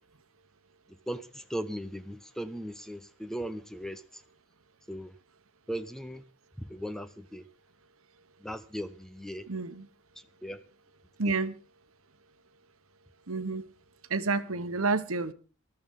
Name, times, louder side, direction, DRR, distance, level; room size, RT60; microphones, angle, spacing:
voice 1, 1.1-4.0 4.9-5.1 5.7-6.2 6.6-7.4 8.4-9.5 10.4-10.6 11.3-11.4, equal, ahead, 0.7 m, -38 dB
voice 2, 9.5-9.9 11.2-11.5 13.3-13.6 14.1-15.3, right 3 dB, 80° right, 1.1 m, -29 dB
20.5 x 13.0 x 3.7 m
head